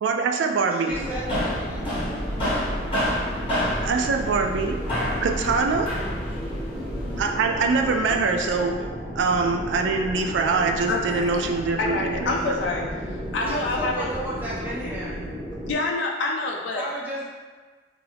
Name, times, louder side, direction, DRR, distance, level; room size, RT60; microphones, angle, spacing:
voice 1, 0.0-0.9 3.8-4.8 5.2-5.9 7.2-8.9 9.2-12.6, right 4 dB, 80° right, 4 dB, 0.3 m, -23 dB
voice 2, 0.7-2.0 13.4-15.3 16.7-17.3, equal, 10° right, -7 dB, 0.5 m, -33 dB
sound 1, 0.9-15.7, equal, 15° left, 1.2 m, -34 dB
sound 2, 1.0-7.3, equal, 30° left, 1.4 m, -29 dB
voice 3, 10.9-11.2 11.8-12.8 13.3-14.1 15.7-16.9, left 3 dB, 80° left, -1 dB, 0.4 m, -26 dB
2.6 x 2.5 x 3.3 m, 1.4 s
head